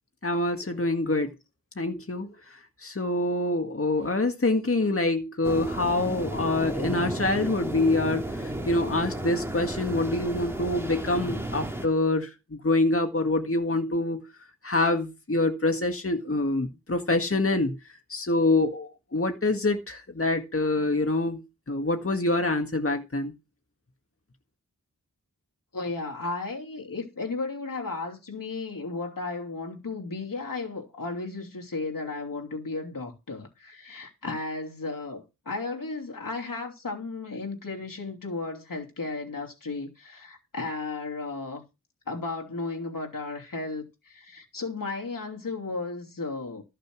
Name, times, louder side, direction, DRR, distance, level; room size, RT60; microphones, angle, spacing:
voice 1, 0.2-1.3 1.8-2.3 2.8-12.3 12.6-14.2 14.6-17.7 18.1-21.4 21.7-23.3, left 2 dB, 45° left, 1.9 m, -26 dB
sound 1, 5.4-11.9, right 1 dB, 5° right, 3.3 m, -33 dB
voice 2, 25.7-41.6 42.1-46.6, left 3 dB, 80° left, 3.0 m, -34 dB
14.0 x 6.7 x 6.3 m
wide cardioid pair, 55°, 33 cm